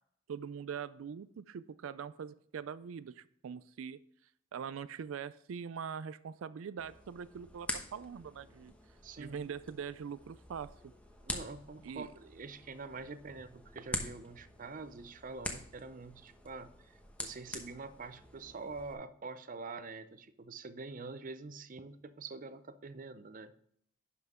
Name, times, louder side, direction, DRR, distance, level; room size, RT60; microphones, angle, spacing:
voice 1, 0.3-4.0 4.5-8.7 9.2-10.9 11.8-12.1, right 7 dB, 90° right, 15 dB, 0.4 m, -43 dB
sound 1, 6.8-18.9, left 1 dB, 5° left, 1.0 m, -46 dB
voice 2, 9.0-9.5 11.2-23.5, right 3 dB, 40° right, 12 dB, 0.5 m, -46 dB
11.0 x 5.7 x 3.6 m, 0.68 s
head